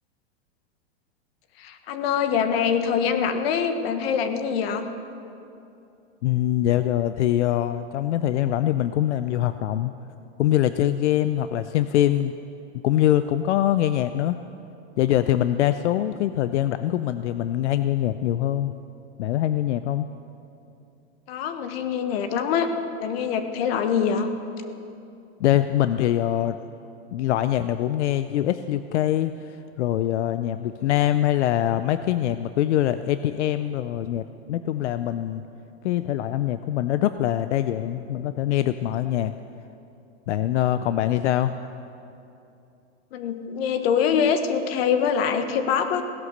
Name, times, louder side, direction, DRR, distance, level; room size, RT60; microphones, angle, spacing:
voice 1, 1.6-4.9 21.3-22.7 23.0-24.3 43.1-46.0, left 7 dB, 60° left, 8 dB, 1.3 m, -24 dB
voice 2, 6.2-9.9 10.4-12.3 12.8-14.4 15.0-18.7 19.2-20.1 25.4-26.6 27.1-35.4 35.8-39.3 40.3-41.5, left 12 dB, 90° left, 11 dB, 0.6 m, -23 dB
17.0 x 11.0 x 6.6 m, 2.7 s
supercardioid pair, 145°, 34 cm